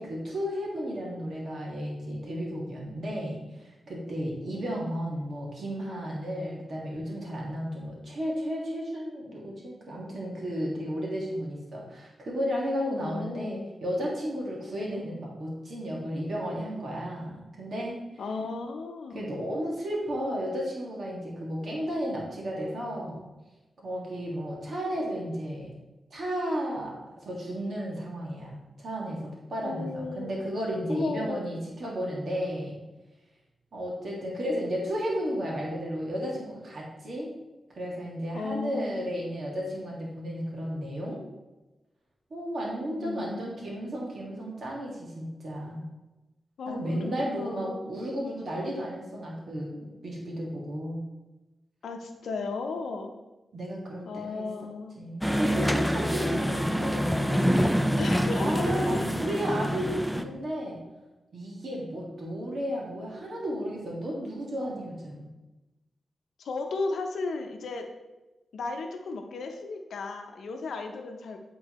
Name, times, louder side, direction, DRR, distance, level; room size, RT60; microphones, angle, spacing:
voice 1, 0.0-18.0 19.1-23.2 23.8-25.7 26.1-32.8 33.7-37.3 37.8-41.2 42.3-45.8 46.7-51.0 53.5-57.9 58.4-60.8 61.3-65.3, equal, 65° right, -3 dB, 1.9 m, -33 dB
voice 2, 12.9-13.7 18.2-19.3 29.6-30.3 30.9-31.4 38.3-39.2 43.0-43.4 46.6-47.9 51.8-53.2 54.1-54.9 58.0-59.0 66.4-67.9 68.5-71.4, left 3 dB, 85° left, 4 dB, 0.7 m, -35 dB
sound 1, 55.2-60.2, equal, ahead, 0.4 m, -26 dB
8.4 x 3.9 x 3.1 m, 1.1 s
cardioid pair, 60°, 0 cm